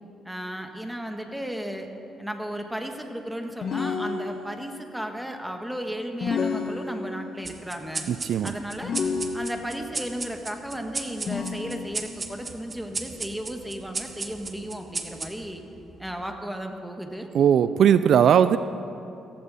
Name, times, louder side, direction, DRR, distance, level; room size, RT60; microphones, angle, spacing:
voice 1, 0.2-1.9 2.2-8.1 8.4-8.9 9.3-15.6 16.0-17.3, equal, 5° right, 4 dB, 1.4 m, -34 dB
sound 1, 3.6-4.7 6.2-7.4 8.8-9.9 11.3-12.2, left 5 dB, 60° left, 1.2 m, -30 dB
sound 2, 7.5-16.3, right 3 dB, 30° right, 1.1 m, -36 dB
voice 2, 8.1-8.5 17.3-18.6, right 9 dB, 65° right, 13 dB, 0.3 m, -19 dB
16.0 x 15.5 x 4.2 m, 2.8 s
cardioid pair, 90°, 0 cm